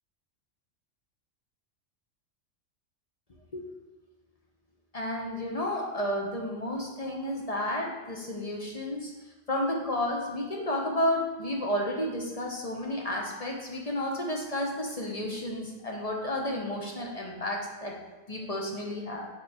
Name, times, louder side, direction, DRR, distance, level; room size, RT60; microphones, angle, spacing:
voice 1, 4.9-9.1 9.5-17.9 18.3-19.3, left 1 dB, 35° left, -1 dB, 0.7 m, -31 dB
5.2 x 4.6 x 4.7 m, 1.2 s
omnidirectional pair, 1.3 m